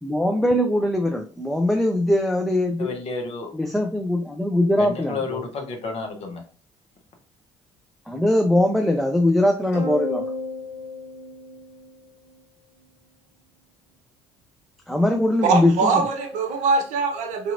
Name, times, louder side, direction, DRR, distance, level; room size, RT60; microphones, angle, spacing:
voice 1, 0.0-3.0 3.5-5.4 8.1-10.2 14.9-15.9, left 1 dB, ahead, 0.3 m, -21 dB
voice 2, 2.8-3.5 4.9-6.4, left 4 dB, 45° left, 0.8 m, -31 dB
sound 1, 9.7-12.3, left 3 dB, 70° left, 1.0 m, -32 dB
voice 3, 15.4-17.5, right 4 dB, 60° right, 0.7 m, -22 dB
2.8 x 2.4 x 2.5 m
figure-of-eight pair, 55°, 14 cm